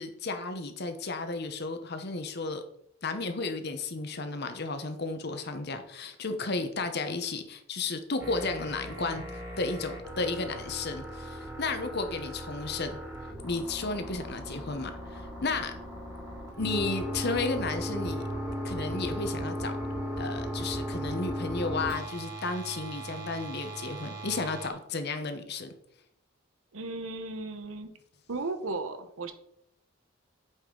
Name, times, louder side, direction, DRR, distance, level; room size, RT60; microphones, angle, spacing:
voice 1, 0.0-2.6 3.0-12.9 13.4-15.7 16.5-18.2 18.6-19.7 20.2-25.7, left 3 dB, 50° left, 8 dB, 0.9 m, -33 dB
sound 1, 8.2-24.7, equal, 15° right, 2.1 m, -37 dB
voice 2, 26.7-27.9 28.3-29.3, right 3 dB, 85° right, 9 dB, 0.9 m, -35 dB
8.2 x 5.3 x 3.9 m, 0.72 s
head